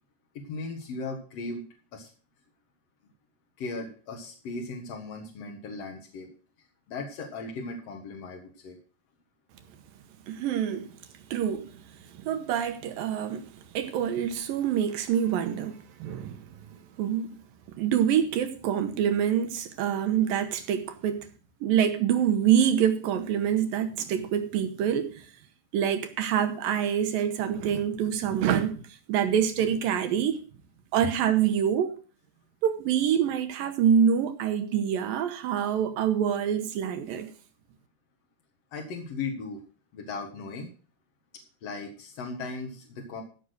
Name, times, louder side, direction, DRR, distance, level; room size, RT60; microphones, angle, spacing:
voice 1, 0.3-1.6 1.9-2.1 3.6-6.3 6.9-8.8 38.7-39.6 39.9-40.7 41.6-43.2, left 3 dB, 55° left, 1.9 m, -37 dB
voice 2, 10.3-10.9 11.3-11.8 12.2-13.5 13.7-16.5 17.0-17.4 17.8-21.3 21.6-25.3 25.7-30.4 30.9-31.9 32.6-37.3, right 9 dB, 75° right, 2.3 m, -26 dB
15.0 x 6.3 x 6.4 m
omnidirectional pair, 5.0 m